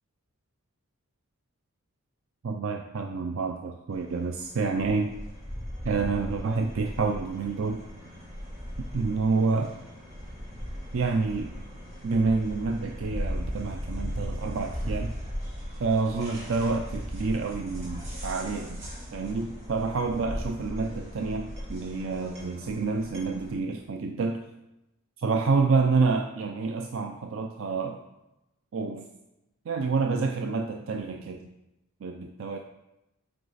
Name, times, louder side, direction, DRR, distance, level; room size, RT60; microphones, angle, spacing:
voice 1, 2.4-5.1 5.8-7.8 8.8-9.7 10.9-11.5 12.0-15.1 15.8-18.9 19.1-24.5 25.2-28.0 28.7-29.1 29.7-31.5 32.0-32.6, right 4 dB, 65° right, 4 dB, 0.4 m, -28 dB
sound 1, 3.9-23.5, equal, 30° right, 2.4 m, -38 dB
7.9 x 4.8 x 4.0 m, 0.94 s
head